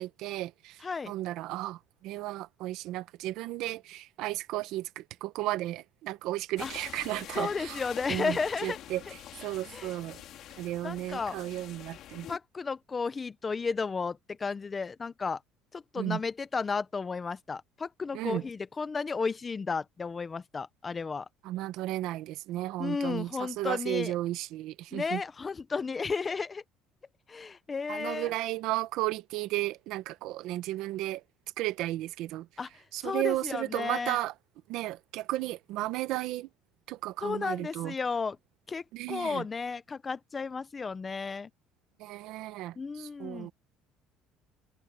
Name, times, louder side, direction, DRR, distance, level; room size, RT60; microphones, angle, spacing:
voice 1, 0.0-7.8 8.1-10.2 10.6-12.3 16.0-16.2 18.1-18.4 21.4-25.2 27.9-31.2 31.6-32.5 32.9-34.3 34.7-36.5 36.9-37.9 38.9-39.4 42.0-43.5, right 16 dB, 60° right, 1.1 m, -34 dB
voice 2, 0.8-1.1 6.6-6.7 7.3-8.8 9.7-9.9 10.8-11.4 12.3-15.4 15.7-21.3 22.8-24.1 24.9-26.6 27.3-28.3 32.6-34.2 37.2-38.4 38.7-41.5 42.8-43.5, left 4 dB, 20° left, 0.6 m, -33 dB
sound 1, 6.6-12.4, left 12 dB, 50° left, 2.3 m, -45 dB
cardioid pair, 165°, 0 cm